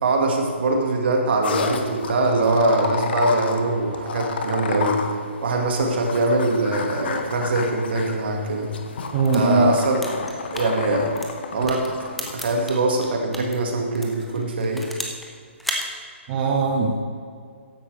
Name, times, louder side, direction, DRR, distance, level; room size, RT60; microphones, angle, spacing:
voice 1, 0.0-5.0 5.4-8.7 9.3-10.0 10.5-11.1 11.5-14.9, right 2 dB, 55° right, 1 dB, 2.1 m, -22 dB
sound 1, 1.4-12.3, left 4 dB, 50° left, 1.2 m, -31 dB
voice 2, 9.1-9.7 16.3-16.9, right 3 dB, 30° right, -2 dB, 1.2 m, -20 dB
sound 2, 9.2-13.5 13.9-15.3 15.6-15.9, equal, ahead, 1.1 m, -33 dB
15.0 x 10.5 x 3.5 m, 2.2 s
figure-of-eight pair, 135°, 7 cm